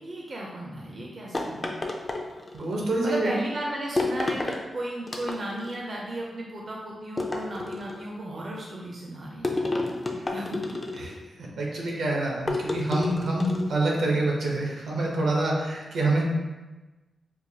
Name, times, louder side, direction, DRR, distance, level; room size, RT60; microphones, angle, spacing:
voice 1, 0.0-1.7 3.0-9.6 10.3-10.6, right 1 dB, 40° right, -2 dB, 0.5 m, -35 dB
sound 1, 1.3-2.7 4.0-4.6 5.1-5.7 7.2-8.1 9.4-11.2 12.5-13.8, left 2 dB, 25° left, 0.4 m, -30 dB
voice 2, 2.5-3.3 11.0-11.1 11.4-16.2, right 2 dB, 80° right, -2 dB, 0.8 m, -26 dB
4.5 x 2.3 x 2.7 m, 1.2 s
wide cardioid pair, 145°, 0 cm